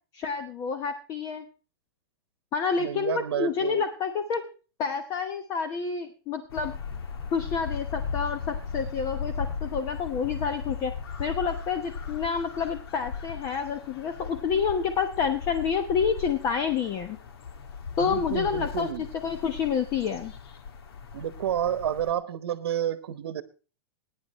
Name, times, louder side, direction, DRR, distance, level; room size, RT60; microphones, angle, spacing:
voice 1, 0.1-1.4 2.5-4.4 4.8-6.7 7.3-10.9 11.2-17.2 18.0-18.9 19.2-20.3, left 6 dB, 25° left, 7 dB, 1.0 m, -28 dB
voice 2, 2.8-3.8 18.0-19.1 21.1-23.4, right 10 dB, 80° right, 12 dB, 1.0 m, -30 dB
sound 1, 6.5-22.1, left 5 dB, 80° left, 1.8 m, -37 dB
20.5 x 10.0 x 3.1 m, 0.36 s
supercardioid pair, 165°, 13 cm